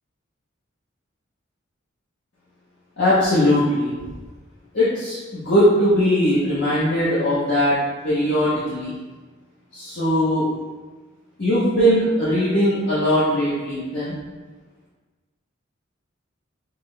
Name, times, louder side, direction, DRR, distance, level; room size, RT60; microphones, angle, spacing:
voice 1, 3.0-3.9 4.7-7.8 8.0-8.9 9.7-10.5 11.4-14.1, equal, 55° left, -10 dB, 1.0 m, -20 dB
5.7 x 2.1 x 3.3 m, 1.3 s
head